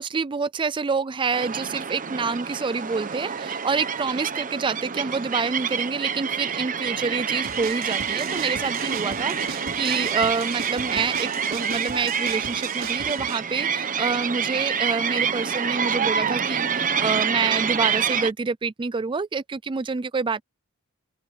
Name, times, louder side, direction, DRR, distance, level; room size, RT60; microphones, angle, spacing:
voice 1, 0.0-20.4, right 4 dB, 20° right, 0.4 m, -27 dB
sound 1, 1.3-18.3, right 7 dB, 40° right, 1.0 m, -27 dB
sound 2, 7.4-13.4, right 5 dB, 60° right, 5.4 m, -37 dB
open air
head